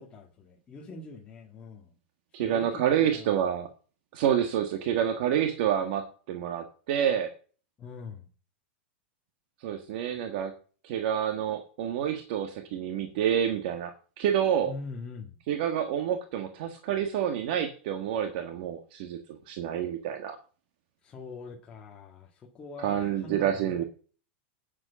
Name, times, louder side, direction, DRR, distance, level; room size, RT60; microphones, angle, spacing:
voice 1, 0.0-2.0 2.4-3.4 7.8-8.3 14.6-15.4 21.0-23.8, left 3 dB, 15° left, -2 dB, 1.9 m, -43 dB
voice 2, 2.3-3.7 4.1-7.3 9.6-10.5 10.8-14.7 15.5-19.2 19.5-20.4 22.8-23.8, right 9 dB, 50° right, 6 dB, 1.6 m, -28 dB
9.6 x 7.7 x 7.0 m, 0.38 s
supercardioid pair, 160°, 6 cm